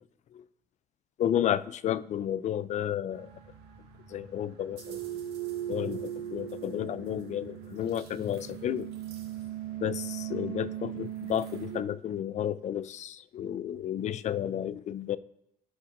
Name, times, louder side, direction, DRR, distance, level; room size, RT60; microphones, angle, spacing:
voice 1, 1.2-3.3 4.1-5.0 5.7-8.9 9.8-15.2, left 10 dB, 45° left, 0.4 m, -32 dB
sound 1, 3.1-11.8, right 12 dB, 75° right, 1.9 m, -39 dB
13.0 x 5.6 x 2.6 m
cardioid pair, 110°, 17 cm